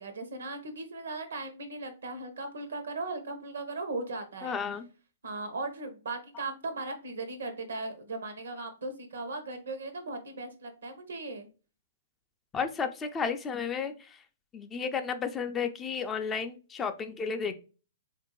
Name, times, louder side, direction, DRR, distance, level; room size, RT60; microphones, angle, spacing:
voice 1, 0.0-4.6 5.2-11.5, right 3 dB, 85° right, 8 dB, 0.9 m, -38 dB
voice 2, 4.4-4.9 12.5-14.2 14.5-17.6, left 6 dB, 15° left, 7 dB, 0.4 m, -33 dB
3.6 x 2.5 x 2.9 m, 0.35 s
hypercardioid pair, 135°, 0 cm